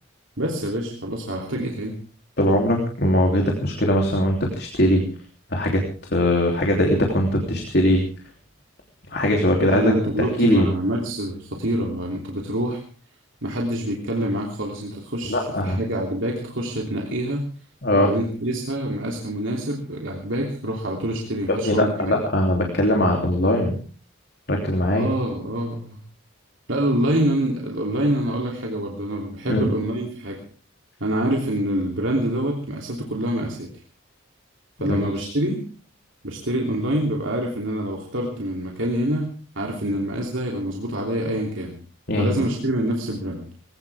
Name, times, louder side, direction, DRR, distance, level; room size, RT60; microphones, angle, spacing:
voice 1, 0.4-2.0 9.6-12.8 13.4-17.5 17.9-22.1 24.9-26.0 26.7-30.4 31.0-33.7 34.8-35.6 36.2-41.8 42.2-43.5, right 1 dB, 70° right, 0 dB, 3.1 m, -26 dB
voice 2, 2.4-5.0 5.5-5.8 6.1-8.0 9.1-10.7 15.3-15.8 17.8-18.1 21.5-23.8 24.5-25.1 29.5-29.7 34.8-35.3 42.1-42.4, left 1 dB, 50° left, 1 dB, 3.2 m, -21 dB
21.0 x 17.0 x 3.6 m, 0.40 s
head